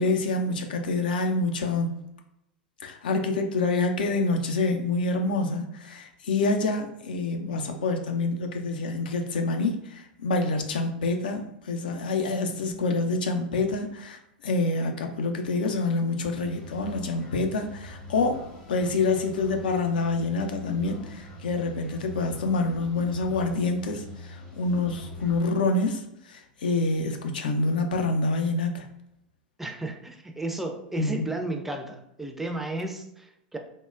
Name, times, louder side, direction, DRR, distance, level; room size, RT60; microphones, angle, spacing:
voice 1, 0.0-2.0 2.8-18.4 18.7-28.8 31.0-31.3, left 3 dB, 70° left, 5 dB, 0.4 m, -27 dB
sound 1, 16.4-25.5, left 2 dB, 45° left, 0.9 m, -43 dB
voice 2, 29.6-33.6, right 2 dB, 5° right, 4 dB, 0.4 m, -33 dB
3.6 x 2.0 x 2.4 m, 0.80 s
figure-of-eight pair, 85°, 5 cm